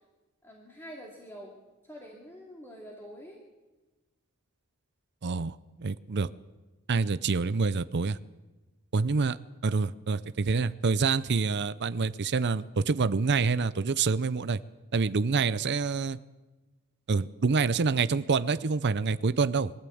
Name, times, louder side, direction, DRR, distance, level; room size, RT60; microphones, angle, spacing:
voice 1, 0.4-1.5 1.8-3.4, equal, 10° left, -2 dB, 2.8 m, -46 dB
voice 2, 5.2-6.3 6.9-8.2 8.9-9.4 9.6-14.6 14.9-16.2 17.1-19.7, right 4 dB, 50° right, 13 dB, 0.6 m, -27 dB
23.0 x 14.5 x 8.6 m, 1.2 s
head